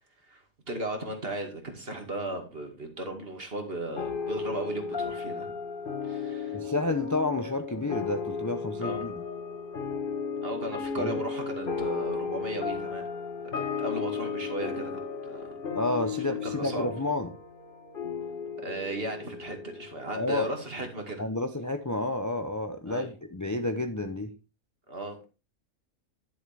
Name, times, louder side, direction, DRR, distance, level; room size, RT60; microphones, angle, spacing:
voice 1, 0.3-5.5 6.0-6.6 8.8-9.1 10.4-13.1 13.6-15.5 16.3-16.9 18.6-21.2 22.9-23.1 24.9-25.3, right 1 dB, 40° right, 4 dB, 2.5 m, -36 dB
sound 1, 4.0-20.8, left 5 dB, 40° left, 1.5 m, -35 dB
voice 2, 6.5-9.1 11.0-11.2 15.7-17.3 20.2-20.5 21.2-24.3, left 2 dB, 20° left, 7 dB, 0.6 m, -30 dB
11.5 x 7.3 x 3.5 m, 0.30 s
omnidirectional pair, 1.5 m